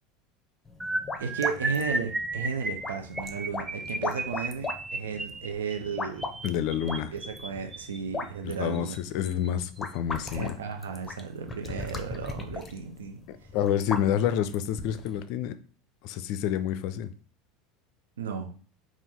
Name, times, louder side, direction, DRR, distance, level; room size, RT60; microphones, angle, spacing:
sound 1, 0.7-15.2, left 3 dB, 20° left, 0.7 m, -39 dB
sound 2, 0.8-8.0 8.7-9.0 9.2-9.5 9.8-10.0, right 2 dB, 15° right, 0.4 m, -34 dB
voice 1, 1.2-6.3 6.8-9.0 10.3-13.2 18.2-18.5, right 6 dB, 80° right, 5 dB, 0.5 m, -34 dB
voice 2, 6.4-7.1 8.4-10.6 13.3-15.6 16.0-17.1, left 10 dB, 60° left, 13 dB, 0.4 m, -28 dB
4.2 x 2.4 x 3.6 m, 0.41 s
hypercardioid pair, 80°, 0 cm